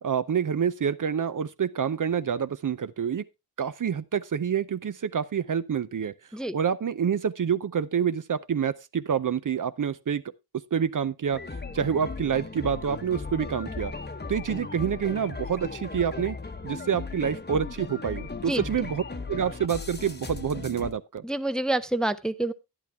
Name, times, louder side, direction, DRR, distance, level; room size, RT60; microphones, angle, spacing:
voice 1, 0.0-3.2 3.6-6.1 6.5-10.2 10.7-11.4 11.7-13.9 14.3-16.4 16.6-19.0 19.3-21.2, right 7 dB, 50° right, 0.6 m, -27 dB
sound 1, 11.3-20.9, left 4 dB, 25° left, 1.0 m, -37 dB
voice 2, 21.2-22.5, right 1 dB, ahead, 0.5 m, -27 dB
11.0 x 10.5 x 3.4 m
wide cardioid pair, 105°, 40 cm